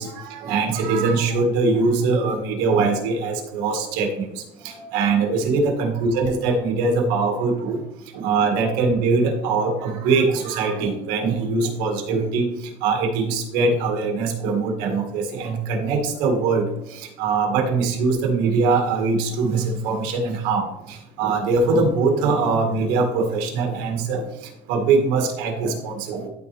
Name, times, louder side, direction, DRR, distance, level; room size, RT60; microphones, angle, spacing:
voice 1, 0.0-7.8 8.1-12.5 12.8-24.3 24.7-26.3, right 4 dB, 80° right, 2 dB, 2.1 m, -22 dB
12.5 x 4.2 x 3.5 m, 0.89 s
cardioid pair, 145°, 14 cm